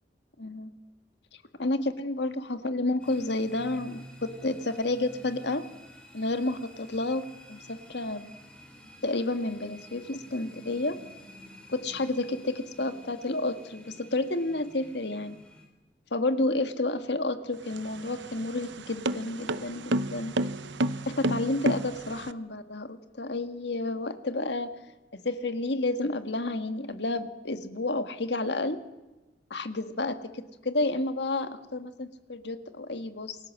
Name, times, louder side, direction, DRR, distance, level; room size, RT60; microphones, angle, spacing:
voice 1, 0.4-0.7 1.6-5.7 6.1-8.3 9.0-11.0 11.7-15.4 16.1-20.3 21.1-24.7 25.1-28.8 29.5-33.4, left 2 dB, 70° left, 9 dB, 1.8 m, -30 dB
sound 1, 3.0-15.6, equal, 5° left, 4.4 m, -50 dB
sound 2, 17.6-22.3, right 2 dB, 85° right, 0.9 m, -31 dB
28.5 x 21.5 x 7.5 m, 1.1 s
head